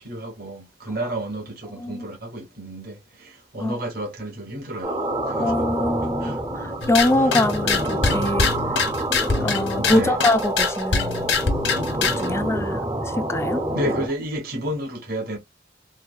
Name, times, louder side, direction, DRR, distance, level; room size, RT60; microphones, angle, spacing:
voice 1, 0.0-5.7 6.0-6.4 7.2-7.3 9.4-10.2 12.6-12.7 13.7-15.4, right 1 dB, 55° right, 1.4 m, -31 dB
sound 1, 4.8-14.1, right 1 dB, 25° right, 0.6 m, -27 dB
voice 2, 5.4-8.5 9.4-11.3 12.0-12.8 13.1-13.6, left 2 dB, 15° left, 0.3 m, -24 dB
sound 2, 6.8-12.3, left 5 dB, 85° left, 0.9 m, -24 dB
4.4 x 2.2 x 2.3 m
head